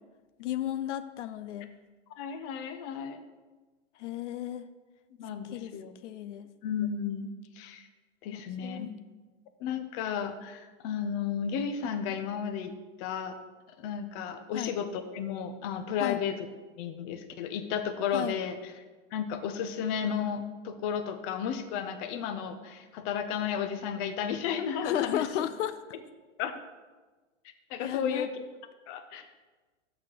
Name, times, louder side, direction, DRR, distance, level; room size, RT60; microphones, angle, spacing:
voice 1, 0.4-1.7 4.0-4.7 5.4-5.7 6.0-6.5 8.3-9.0 14.5-14.7 16.0-16.2 18.1-18.4 24.8-25.8 27.8-28.3, left 11 dB, 70° left, 13 dB, 0.5 m, -34 dB
voice 2, 2.1-3.2 5.2-6.0 6.6-7.3 7.6-7.9 8.2-8.9 9.6-12.7 13.0-13.4 13.8-16.4 16.8-18.6 19.1-25.5 26.4-26.5 27.7-28.4 28.9-29.3, left 7 dB, 45° left, 9 dB, 0.9 m, -33 dB
6.3 x 6.2 x 6.4 m, 1.3 s
hypercardioid pair, 120°, 38 cm